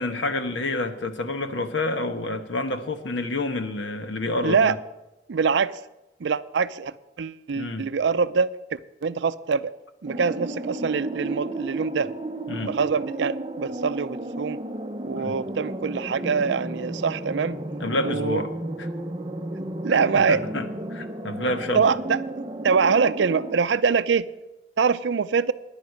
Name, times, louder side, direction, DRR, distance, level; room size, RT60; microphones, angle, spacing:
voice 1, 0.0-4.8 7.5-7.9 12.5-12.7 15.1-15.3 17.8-18.5 18.8-18.9 19.9-21.8, left 2 dB, 85° left, 8 dB, 1.1 m, -28 dB
voice 2, 4.4-4.7 5.3-5.8 6.2-9.7 10.0-12.1 12.5-14.6 15.0-17.6 18.0-18.4 19.5-20.4 21.7-22.2 22.6-24.3 24.8-25.5, right 5 dB, 75° right, 15 dB, 0.5 m, -24 dB
sound 1, 10.1-23.6, right 1 dB, 25° right, 0.6 m, -33 dB
10.5 x 9.4 x 6.4 m, 0.99 s
head